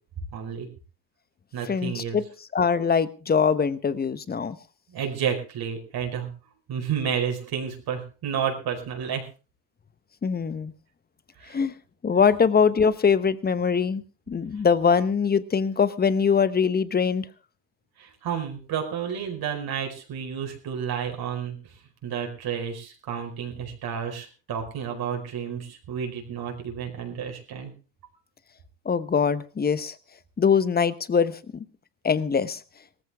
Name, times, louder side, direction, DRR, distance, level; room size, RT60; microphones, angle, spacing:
voice 1, 0.3-0.7 1.5-2.2 4.9-6.3 6.7-9.2 11.4-11.6 18.0-21.6 22.0-27.7, right 7 dB, 50° right, 2 dB, 4.8 m, -31 dB
voice 2, 1.7-2.2 2.5-4.6 10.2-10.7 11.5-11.7 12.0-17.3 28.8-29.9 30.4-31.6 32.0-32.6, left 6 dB, 20° left, 16 dB, 1.0 m, -23 dB
18.0 x 14.5 x 3.5 m, 0.34 s
supercardioid pair, 100°, 47 cm